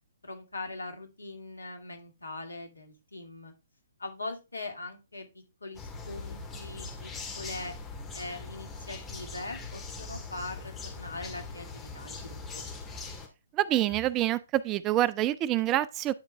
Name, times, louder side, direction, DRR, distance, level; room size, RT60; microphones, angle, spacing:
voice 1, 0.2-3.5 4.0-7.7 8.1-12.7, left 2 dB, 75° left, 2.2 m, -41 dB
sound 1, 5.7-13.3, left 3 dB, 10° left, 1.9 m, -41 dB
voice 2, 13.5-16.1, right 14 dB, 20° right, 0.3 m, -26 dB
11.0 x 4.4 x 3.4 m
figure-of-eight pair, 130°, 0 cm